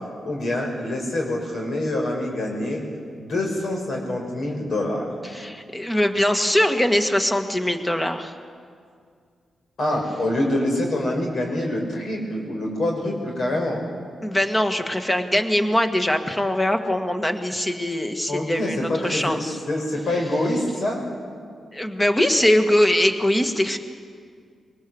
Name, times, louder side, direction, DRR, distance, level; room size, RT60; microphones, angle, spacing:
voice 1, 0.2-2.8 3.2-5.1 9.8-13.8 18.3-21.0, left 1 dB, 65° left, 0 dB, 5.8 m, -25 dB
voice 2, 5.2-8.3 14.2-19.6 21.7-23.8, left 1 dB, 15° left, 6 dB, 1.8 m, -22 dB
22.0 x 19.0 x 7.9 m, 2.2 s
cardioid pair, 80°, 0 cm